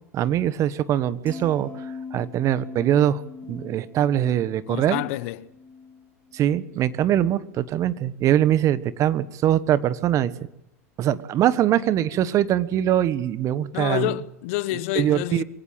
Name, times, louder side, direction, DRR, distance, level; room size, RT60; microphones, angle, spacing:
voice 1, 0.1-3.2 3.5-5.0 6.3-10.3 11.0-14.1 14.9-15.4, right 11 dB, 40° right, 1.3 m, -22 dB
sound 1, 1.2-7.5 7.9-8.2, left 5 dB, 15° left, 2.3 m, -42 dB
voice 2, 4.7-5.5 13.7-15.4, left 17 dB, 60° left, 1.0 m, -28 dB
24.0 x 17.0 x 7.6 m
hypercardioid pair, 95°, 8 cm